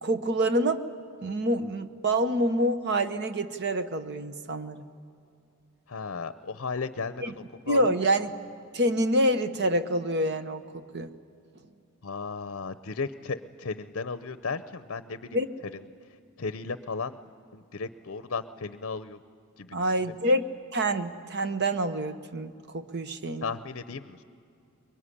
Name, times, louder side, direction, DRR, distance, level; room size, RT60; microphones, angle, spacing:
voice 1, 0.0-0.8 1.2-4.8 7.2-7.3 7.7-8.3 8.7-11.1 15.3-15.5 19.7-20.4 20.7-23.4, right 1 dB, 50° right, 10 dB, 1.0 m, -27 dB
voice 2, 5.9-8.1 12.0-17.2 17.5-19.2 19.6-20.2 23.4-24.2, left 4 dB, 55° left, 12 dB, 0.7 m, -35 dB
22.5 x 22.5 x 9.9 m, 2.5 s
head